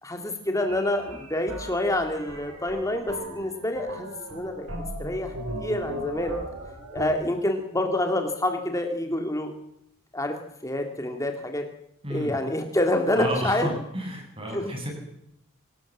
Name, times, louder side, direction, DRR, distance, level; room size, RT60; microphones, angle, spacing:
voice 1, 0.0-4.7 5.0-5.3 5.6-6.3 6.9-9.5 10.1-10.3 10.6-11.6 12.1-13.7 14.5-14.7, left 1 dB, 15° left, 4 dB, 2.3 m, -27 dB
sound 1, 0.7-7.1, right 1 dB, 80° right, 6.5 m, -37 dB
voice 2, 12.0-12.4 13.1-14.9, equal, 25° right, 3 dB, 7.2 m, -32 dB
26.0 x 19.5 x 7.4 m, 0.76 s
head